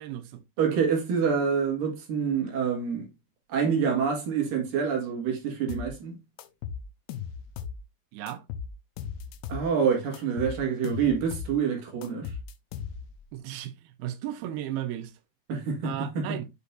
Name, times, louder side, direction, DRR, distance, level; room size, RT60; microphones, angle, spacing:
voice 1, 0.0-0.4 8.1-8.4 13.3-15.1 15.8-16.5, right 12 dB, 85° right, 2.7 m, -35 dB
voice 2, 0.6-3.1 3.5-6.2 9.5-12.3 15.5-16.4, right 6 dB, 70° right, 3.3 m, -27 dB
sound 1, 5.7-5.9 6.4-7.8 8.3-9.7 10.1-11.6 12.0-13.2, left 7 dB, 85° left, 2.6 m, -37 dB
8.0 x 5.2 x 2.6 m
omnidirectional pair, 4.3 m